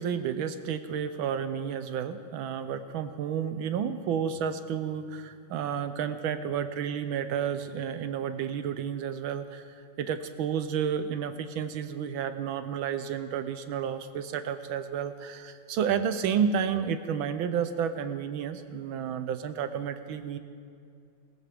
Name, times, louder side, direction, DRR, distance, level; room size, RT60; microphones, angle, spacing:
voice 1, 0.0-9.7 10.0-20.4, right 8 dB, 75° right, 10 dB, 1.4 m, -31 dB
20.0 x 18.5 x 3.5 m, 2.4 s
omnidirectional pair, 2.4 m